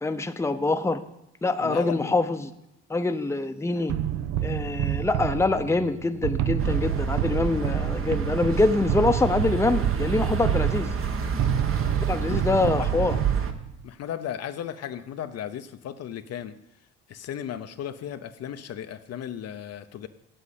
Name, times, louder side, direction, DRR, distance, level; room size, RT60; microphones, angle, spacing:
voice 1, 0.0-1.0 1.4-2.5 2.9-4.0 4.4-10.9 12.0-13.2, left 3 dB, 10° left, 8 dB, 0.8 m, -25 dB
voice 2, 1.6-2.1 12.3-13.0 13.8-16.6 17.1-20.1, left 9 dB, 55° left, 9 dB, 0.7 m, -35 dB
sound 1, 3.9-13.8, right 11 dB, 65° right, 0.8 m, -29 dB
sound 2, 6.6-13.5, right 6 dB, 45° right, 1.2 m, -28 dB
8.1 x 7.8 x 8.3 m, 0.90 s
supercardioid pair, 75°, 30 cm